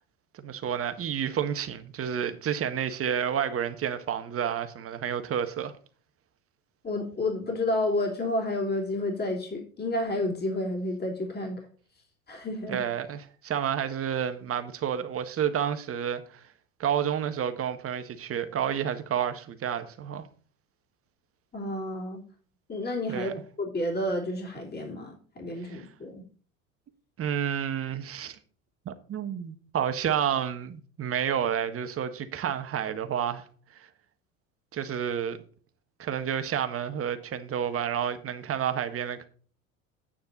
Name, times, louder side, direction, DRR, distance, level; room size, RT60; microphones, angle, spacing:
voice 1, 0.3-5.7 12.7-16.4 16.8-20.3 23.1-23.3 25.6-25.9 27.2-28.4 28.8-33.4 33.7-33.9 34.7-35.4 36.0-39.3, right 8 dB, 35° right, 1.4 m, -30 dB
voice 2, 6.8-11.6 12.3-12.8 21.5-22.2 22.7-26.2, left 1 dB, 25° left, 3.4 m, -30 dB
9.4 x 8.9 x 4.1 m
hypercardioid pair, 75°, 40 cm